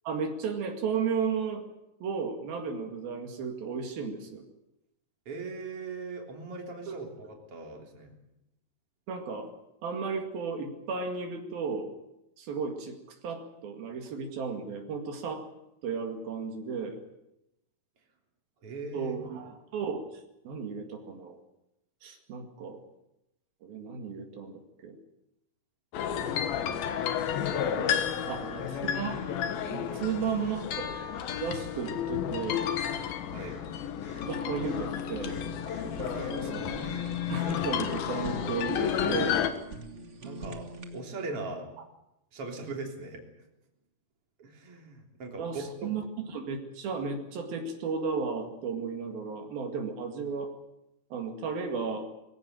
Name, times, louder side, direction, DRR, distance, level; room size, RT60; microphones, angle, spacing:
voice 1, 0.1-1.6 2.0-4.4 6.9-7.0 9.1-9.5 9.8-11.9 12.4-15.4 15.8-17.0 18.9-21.4 22.0-22.8 23.6-25.0 27.7-29.2 29.7-30.9 31.4-32.7 34.2-35.4 35.8-36.5 37.3-39.4 45.4-50.5 51.1-52.0, right 5 dB, 80° right, 3 dB, 4.0 m, -34 dB
voice 2, 5.3-8.1 18.6-19.2 28.1-28.7 30.5-30.6 33.3-33.6 36.0-36.8 40.2-40.7 40.9-41.7 42.3-43.2 44.4-45.9, right 3 dB, 40° right, 1 dB, 4.1 m, -40 dB
sound 1, 25.9-39.5, left 9 dB, 85° left, 3.3 m, -32 dB
sound 2, 29.0-32.0 32.3-32.6 33.3-33.7 34.0-34.9 35.3-38.3, left 2 dB, 65° left, 7.8 m, -54 dB
Fire, 34.7-41.0, right 1 dB, 65° right, 0.7 m, -43 dB
22.5 x 16.0 x 9.0 m, 0.88 s
omnidirectional pair, 4.2 m